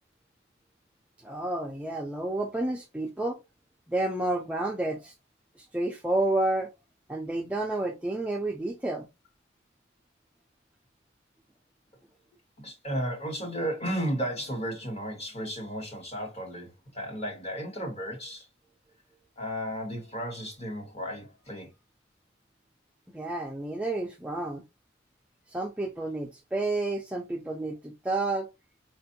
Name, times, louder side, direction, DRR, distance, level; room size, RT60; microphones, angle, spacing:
voice 1, 1.2-3.4 3.9-5.1 5.6-6.7 7.1-9.1 23.1-24.6 25.5-28.5, right 2 dB, 5° right, 0.4 m, -30 dB
voice 2, 12.6-18.5 19.4-21.7, equal, 30° left, 1.3 m, -34 dB
4.3 x 2.5 x 2.7 m
head